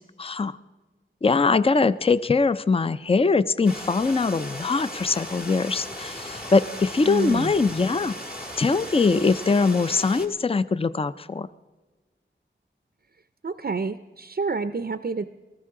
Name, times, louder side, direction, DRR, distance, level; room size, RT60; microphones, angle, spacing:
voice 1, 0.2-0.6 1.2-8.2 8.6-11.5, left 4 dB, 30° left, 15 dB, 0.4 m, -22 dB
sound 1, 3.6-10.3, left 1 dB, 50° left, 1.8 m, -37 dB
voice 2, 7.0-7.5 13.4-15.2, right 4 dB, 50° right, 11 dB, 0.5 m, -28 dB
18.0 x 14.5 x 3.7 m, 1.3 s
wide cardioid pair, 60°, 20 cm